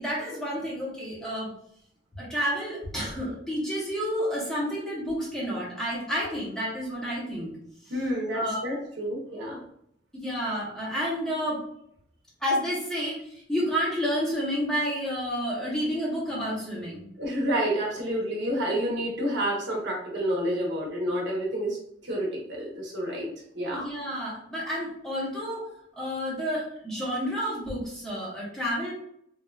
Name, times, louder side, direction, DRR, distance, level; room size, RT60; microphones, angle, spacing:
voice 1, 0.0-1.5 2.2-7.5 8.3-8.6 10.1-11.6 12.4-17.1 23.7-25.7 25.9-28.9, equal, 5° left, -6 dB, 0.8 m, -30 dB
voice 2, 7.9-9.6 17.2-21.8 22.0-23.3 23.5-23.8, equal, 65° right, -3 dB, 0.9 m, -29 dB
3.1 x 2.2 x 2.3 m, 0.71 s
head